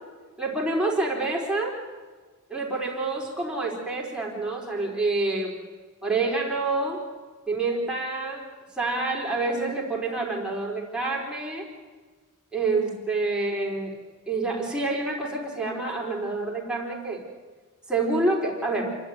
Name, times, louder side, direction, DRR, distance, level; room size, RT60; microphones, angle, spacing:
voice 1, 0.4-1.8 2.5-5.6 6.0-7.0 7.5-8.4 8.8-11.7 12.5-13.9 14.3-17.2 17.9-19.0, right 3 dB, 5° right, -3 dB, 4.3 m, -27 dB
28.0 x 12.5 x 9.3 m, 1.4 s
head